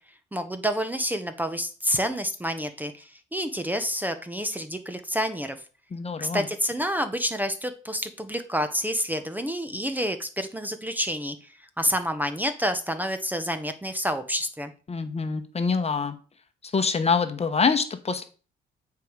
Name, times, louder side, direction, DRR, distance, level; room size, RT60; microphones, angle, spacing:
voice 1, 0.3-5.6 6.2-11.5 11.8-14.7, equal, 10° right, 9 dB, 0.8 m, -28 dB
voice 2, 5.9-6.5 14.9-16.2 16.7-18.2, left 5 dB, 30° left, 9 dB, 1.1 m, -25 dB
9.0 x 4.7 x 5.0 m, 0.37 s
cardioid pair, 90°, 20 cm